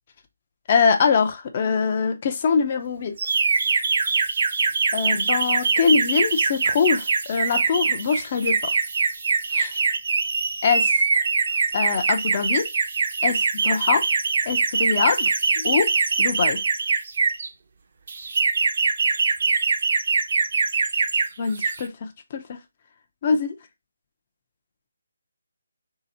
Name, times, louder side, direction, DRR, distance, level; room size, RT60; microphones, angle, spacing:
voice 1, 0.7-3.2 4.9-8.7 9.5-9.8 10.6-11.0 11.7-12.7 13.2-14.1 14.5-16.6 21.4-22.6 23.2-23.5, left 5 dB, 30° left, 0.5 m, -23 dB
sound 1, 3.2-17.5 18.1-21.3 21.5-21.9, right 4 dB, 50° right, 0.6 m, -23 dB
3.4 x 2.8 x 4.1 m
hypercardioid pair, 170°, 0 cm